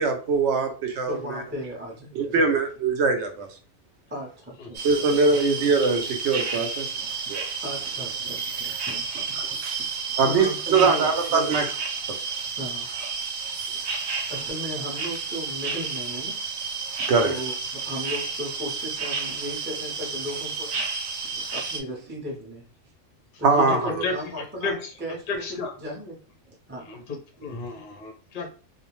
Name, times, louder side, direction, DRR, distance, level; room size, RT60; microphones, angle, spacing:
voice 1, 0.0-1.4 2.2-3.5 4.8-6.9 7.3-7.5 10.2-11.7 12.1-12.2 17.1-17.3 23.4-23.9, right 4 dB, 65° right, 4 dB, 0.8 m, -22 dB
voice 2, 1.1-2.5 4.1-4.8 5.3-5.4 6.9-7.4 7.6-11.6 12.6-13.3 13.6-13.9 14.3-16.4 17.2-20.8 21.2-22.7 23.4-26.2 26.4-26.9 27.6-27.7, equal, 10° right, -2 dB, 0.5 m, -36 dB
sound 1, 4.7-21.8, right 5 dB, 90° right, 1.0 m, -31 dB
voice 3, 23.7-24.1 24.6-24.9 25.3-25.7 26.9-28.5, left 4 dB, 55° left, 2 dB, 0.6 m, -32 dB
2.4 x 2.1 x 3.0 m, 0.38 s
omnidirectional pair, 1.4 m